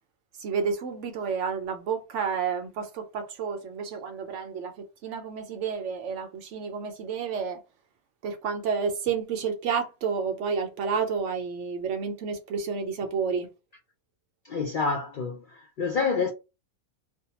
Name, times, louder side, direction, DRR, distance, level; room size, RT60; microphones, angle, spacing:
voice 1, 0.4-7.6 8.2-13.5, right 6 dB, 65° right, 0.8 m, -30 dB
voice 2, 14.4-16.3, left 4 dB, 85° left, 0.4 m, -28 dB
2.6 x 2.2 x 2.8 m
omnidirectional pair, 1.5 m